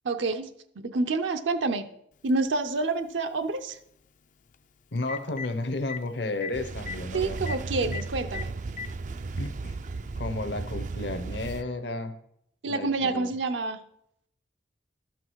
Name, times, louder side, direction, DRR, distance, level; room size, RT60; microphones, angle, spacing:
voice 1, 0.0-0.5 0.8-1.9 2.2-3.8 7.1-8.5 12.6-13.8, right 3 dB, 75° right, 7 dB, 0.6 m, -28 dB
Telephone, 2.3-2.4 4.5-4.6 5.0-5.5 5.9-6.0 6.4-6.5 6.8-7.0 7.5-7.6 7.9-8.0 8.3-8.9 9.9-10.0 11.4-11.5, left 7 dB, 45° left, 0.4 m, -36 dB
voice 2, 4.9-8.0 9.4-9.8 10.2-12.1 12.6-13.3, left 2 dB, 65° left, 8 dB, 0.9 m, -33 dB
sound 1, 6.5-11.6, right 3 dB, 40° right, 0.3 m, -35 dB
12.5 x 6.0 x 4.6 m, 0.73 s
head